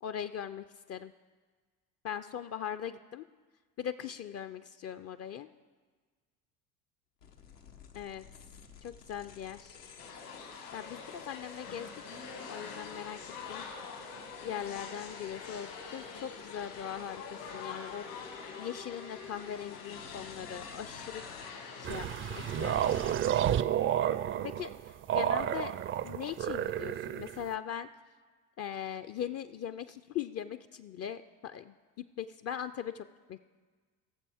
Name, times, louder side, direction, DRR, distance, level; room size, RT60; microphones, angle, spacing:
voice 1, 0.0-1.1 2.0-3.2 3.8-5.5 7.9-8.3 8.8-9.8 10.7-11.9 12.5-13.6 14.1-17.2 17.5-18.1 18.6-21.2 21.8-23.1 24.4-25.8 26.0-27.9 28.6-33.4, left 9 dB, 35° left, 11 dB, 0.4 m, -40 dB
sound 1, 7.2-21.5, left 5 dB, 85° left, 1.1 m, -50 dB
sound 2, 10.0-23.2, left 5 dB, 70° left, 2.3 m, -46 dB
sound 3, 21.8-27.5, right 10 dB, 30° right, 0.4 m, -31 dB
19.0 x 7.0 x 3.5 m, 1.5 s
hypercardioid pair, 60°, 46 cm